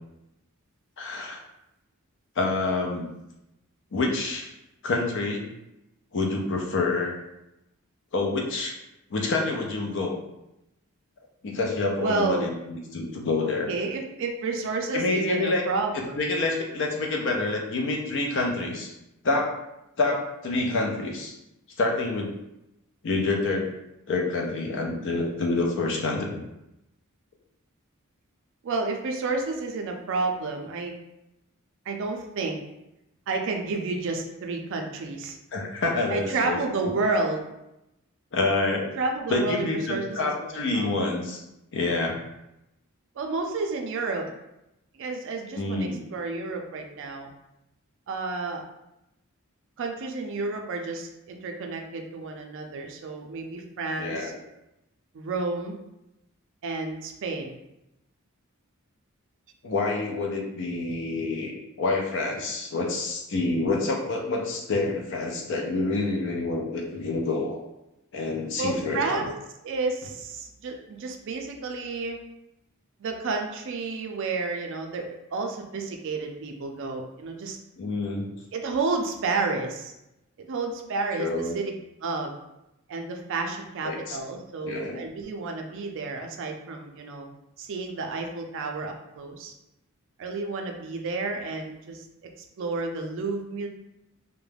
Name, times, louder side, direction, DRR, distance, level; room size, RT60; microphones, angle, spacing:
voice 1, 1.0-1.4 2.4-3.1 3.9-4.5 4.8-5.4 6.1-7.1 8.1-8.8 9.1-10.2 11.4-13.7 14.9-15.7 15.9-18.9 19.2-19.6 20.0-21.3 21.8-22.3 23.0-23.7 24.1-26.4 35.5-36.6 38.3-38.9 39.3-41.4 41.7-42.2 45.5-46.0 54.0-54.3 59.6-61.5 61.8-67.6 68.1-69.2 77.8-78.3 81.2-81.6 83.8-84.2 84.6-85.0, left 3 dB, 60° left, 0 dB, 0.5 m, -27 dB
voice 2, 12.0-12.5 13.4-16.2 28.6-30.9 31.9-32.6 33.3-35.4 36.1-37.5 39.0-40.3 40.7-40.9 43.2-44.3 44.9-47.3 48.1-48.6 49.8-54.3 55.1-55.8 56.6-57.6 68.6-69.3 69.6-72.2 73.0-77.6 78.5-79.9 80.5-81.7 82.0-82.3 82.9-87.3 87.6-89.5 90.2-92.0 92.6-93.7, right 3 dB, 60° right, 3 dB, 0.4 m, -30 dB
2.3 x 2.0 x 3.2 m, 0.89 s
head